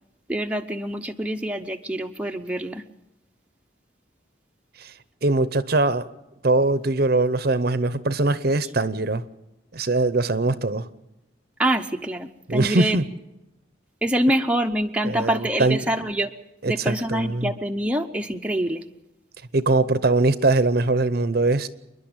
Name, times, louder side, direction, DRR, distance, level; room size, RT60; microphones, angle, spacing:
voice 1, 0.3-2.8 11.6-13.0 14.0-16.3 16.7-18.8, right 1 dB, 5° right, 3 dB, 0.7 m, -25 dB
voice 2, 5.2-6.1 6.4-9.2 9.7-10.9 12.5-13.0 15.0-15.8 16.6-17.5 19.5-21.7, right 2 dB, 50° right, 14 dB, 0.8 m, -21 dB
29.0 x 11.0 x 8.8 m, 0.92 s
head